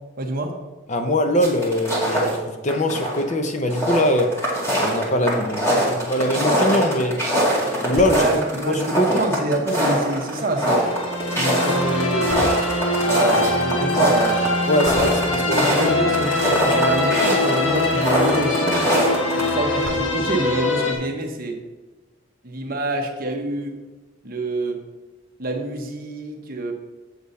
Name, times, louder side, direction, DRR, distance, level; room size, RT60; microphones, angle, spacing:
voice 1, 0.2-0.5 8.1-10.8 11.3-12.5 13.0-14.4 15.0-15.1 15.5-18.8 19.3-21.6 22.4-23.7 24.2-24.8 25.4-26.7, right 2 dB, 45° right, 2 dB, 1.1 m, -26 dB
voice 2, 0.9-4.4 4.8-7.2 7.8-8.3 8.7-9.1 14.7-15.9, left 1 dB, 35° left, 5 dB, 0.6 m, -22 dB
sound 1, 1.4-2.3 2.7-3.3 3.6-19.5, equal, 15° left, 2.0 m, -22 dB
sound 2, 7.9-8.5 12.3-12.9 14.8-15.3 16.5-16.7 17.1-17.2 17.5-17.6 19.8-20.4, right 2 dB, 80° right, 1.0 m, -33 dB
sound 3, 10.5-20.9, left 2 dB, 65° left, 1.2 m, -23 dB
8.3 x 6.7 x 4.1 m, 1.2 s
head